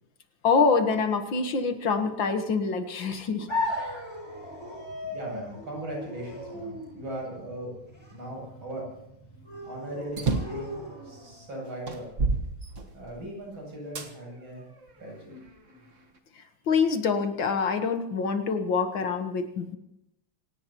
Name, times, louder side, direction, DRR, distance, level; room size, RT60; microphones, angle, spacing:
voice 1, 0.4-3.5 3.8-4.0 16.7-19.8, left 5 dB, 65° left, 7 dB, 2.0 m, -25 dB
sound 1, 3.5-11.4, left 1 dB, 10° left, 6.4 m, -37 dB
voice 2, 5.0-7.7 8.1-8.8 9.7-12.1 12.9-14.7 14.9-15.3, right 1 dB, 65° right, -2 dB, 9.0 m, -39 dB
sound 2, 10.1-10.7 11.3-11.4 11.9-13.3 14.0-14.1 14.8-15.9, right 3 dB, 40° right, 1.6 m, -30 dB
27.5 x 17.0 x 3.0 m, 0.84 s
omnidirectional pair, 2.4 m